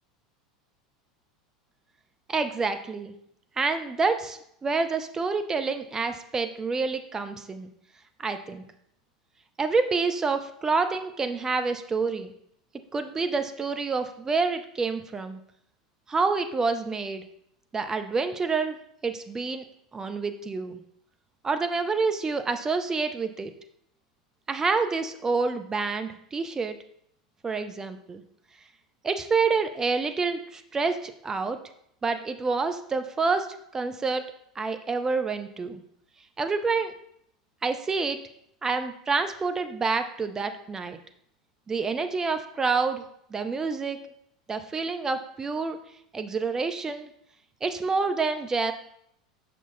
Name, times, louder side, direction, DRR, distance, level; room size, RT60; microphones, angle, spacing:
voice 1, 2.3-3.1 3.6-7.7 8.2-8.6 9.6-12.3 12.9-15.4 16.1-17.2 17.7-18.8 19.0-19.6 19.9-20.8 21.4-23.5 24.5-26.8 27.4-28.2 29.0-31.6 32.0-33.5 33.7-34.2 34.6-35.8 36.4-36.9 37.6-38.2 38.6-41.0 41.7-43.0 43.3-44.0 44.5-45.8 46.1-47.1 47.6-48.7, right 4 dB, 15° right, 8 dB, 0.5 m, -28 dB
6.0 x 5.9 x 2.6 m, 0.72 s
figure-of-eight pair, 80°, 3 cm